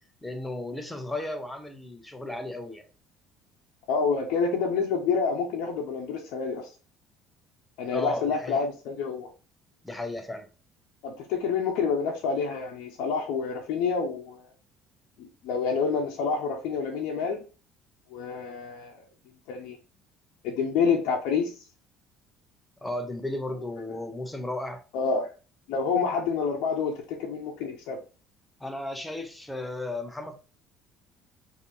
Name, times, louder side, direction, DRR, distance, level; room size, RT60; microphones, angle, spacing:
voice 1, 0.2-2.8 7.9-8.6 9.8-10.5 22.8-24.8 28.6-30.3, left 1 dB, 5° left, 0.7 m, -34 dB
voice 2, 3.9-6.7 7.8-9.3 11.0-14.4 15.2-17.4 18.1-19.0 19.5-19.8 20.4-21.6 24.9-25.3 25.7-28.0, left 5 dB, 80° left, 0.7 m, -28 dB
5.0 x 2.7 x 2.6 m
cardioid pair, 125°, 0 cm